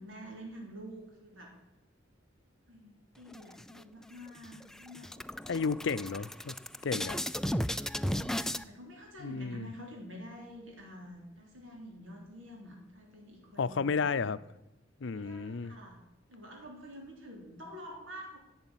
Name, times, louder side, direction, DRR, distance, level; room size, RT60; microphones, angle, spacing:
voice 1, 0.0-1.5 2.7-5.5 8.0-13.9 15.0-16.0 16.3-18.4, equal, 75° right, 3.9 m, -48 dB
sound 1, 3.3-4.1 4.4-4.6 4.9-8.6, equal, 5° left, 0.4 m, -35 dB
voice 2, 5.5-6.5 6.8-7.2 9.2-9.7 13.6-14.4 15.0-15.8, left 5 dB, 65° left, 0.6 m, -32 dB
11.5 x 8.3 x 9.8 m
head